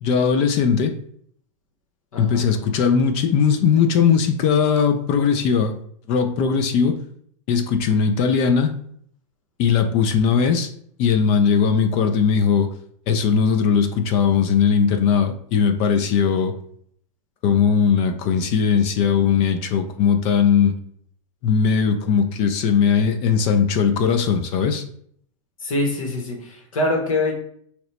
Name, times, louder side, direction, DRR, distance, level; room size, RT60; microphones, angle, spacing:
voice 1, 0.0-0.9 2.2-5.7 6.1-7.0 7.5-8.7 9.6-10.7 11.0-12.7 13.1-16.5 17.4-20.7 21.4-24.8, left 6 dB, 35° left, 7 dB, 0.3 m, -19 dB
voice 2, 2.1-2.5 25.6-27.3, left 2 dB, 85° left, 2 dB, 1.0 m, -24 dB
2.9 x 2.0 x 4.1 m, 0.64 s
hypercardioid pair, 130°, 17 cm